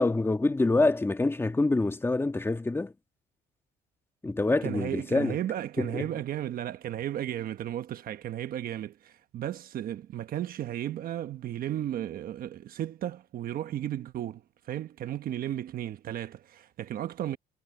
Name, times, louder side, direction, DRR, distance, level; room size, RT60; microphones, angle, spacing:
voice 1, 0.0-2.9 4.2-5.4 5.8-6.1, left 2 dB, 15° left, 2.0 m, -26 dB
voice 2, 4.6-14.4 14.7-17.4, right 12 dB, 60° right, 1.2 m, -34 dB
cardioid pair, 110°, 17 cm